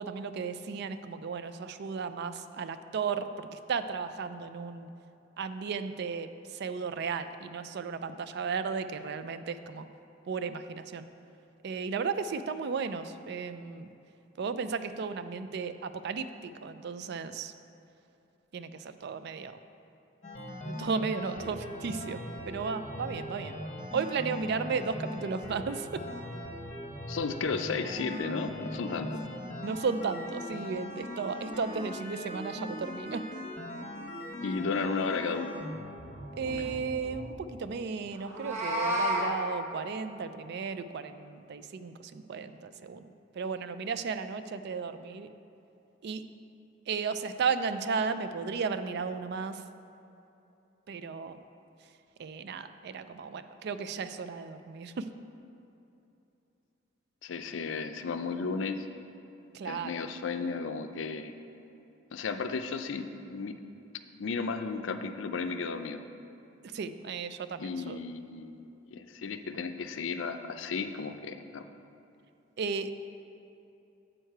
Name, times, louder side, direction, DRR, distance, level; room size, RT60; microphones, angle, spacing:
voice 1, 0.0-4.9 5.4-9.9 10.3-11.0 11.6-13.9 14.4-17.5 18.5-19.5 20.7-22.2 22.5-23.6 23.9-26.0 29.6-33.2 36.3-43.0 43.3-45.3 46.0-46.2 46.9-49.6 50.9-51.4 52.2-55.1 59.5-59.9 66.7-68.0 72.6-72.9, right 5 dB, 60° right, 11 dB, 0.4 m, -34 dB
sound 1, 20.2-37.3, left 1 dB, 35° left, 1.1 m, -40 dB
voice 2, 27.1-29.2 34.4-35.5 36.5-36.7 57.2-58.9 59.6-61.3 62.1-63.6 64.1-66.0 67.6-71.6, left 4 dB, 70° left, 8 dB, 0.5 m, -34 dB
Meow, 38.2-39.3, equal, 40° right, 1.2 m, -29 dB
7.5 x 6.5 x 4.6 m, 2.8 s
head